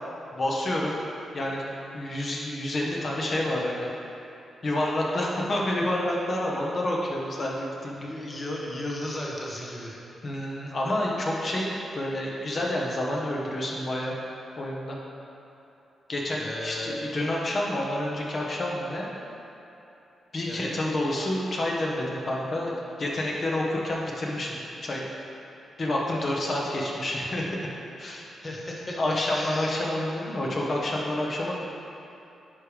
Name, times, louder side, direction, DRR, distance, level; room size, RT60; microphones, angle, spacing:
voice 1, 0.3-1.1 1.3-3.9 4.6-8.1 10.2-14.1 14.6-15.0 16.1-19.1 20.3-22.7 23.0-24.5 24.8-25.0 25.8-27.4 28.0-28.3 29.0-31.6, left 1 dB, 45° left, -3 dB, 1.3 m, -28 dB
voice 2, 8.1-10.0 16.4-17.0 20.5-20.7 28.4-29.0 29.3-29.7, left 1 dB, 30° left, -3 dB, 1.2 m, -35 dB
9.8 x 5.4 x 3.5 m, 2.9 s
cardioid pair, 90°, 0 cm